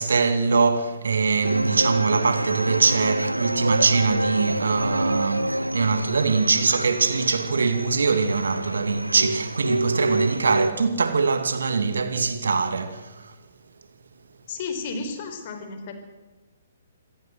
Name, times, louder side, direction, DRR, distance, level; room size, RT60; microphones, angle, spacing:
voice 1, 0.0-13.3, right 4 dB, 65° right, 2.4 m, -23 dB
sound 1, 1.4-10.7, right 1 dB, 85° right, 0.6 m, -27 dB
voice 2, 14.5-15.9, left 4 dB, 40° left, 4.3 m, -32 dB
27.0 x 17.0 x 7.9 m
figure-of-eight pair, 125°, 0 cm